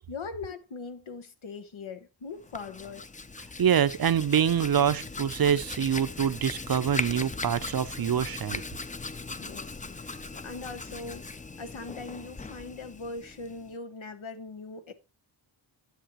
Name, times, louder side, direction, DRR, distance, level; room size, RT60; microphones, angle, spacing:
voice 1, 0.1-3.0 9.4-14.9, left 4 dB, 90° left, 1.1 m, -41 dB
Hands, 2.3-13.8, left 3 dB, 20° left, 0.4 m, -39 dB
voice 2, 3.6-8.6, right 8 dB, 50° right, 0.5 m, -25 dB
10.0 x 7.4 x 2.9 m
wide cardioid pair, 65°, 46 cm